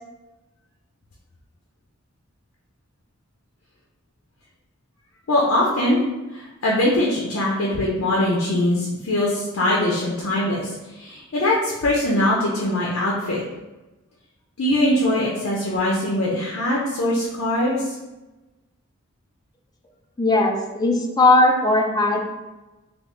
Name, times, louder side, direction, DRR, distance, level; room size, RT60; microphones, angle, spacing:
voice 1, 5.3-6.0 6.3-13.4 14.6-18.0, left 1 dB, 70° left, -4 dB, 0.6 m, -22 dB
voice 2, 20.2-22.2, left 2 dB, 20° left, 2 dB, 0.3 m, -18 dB
3.4 x 2.4 x 3.0 m, 1.1 s
head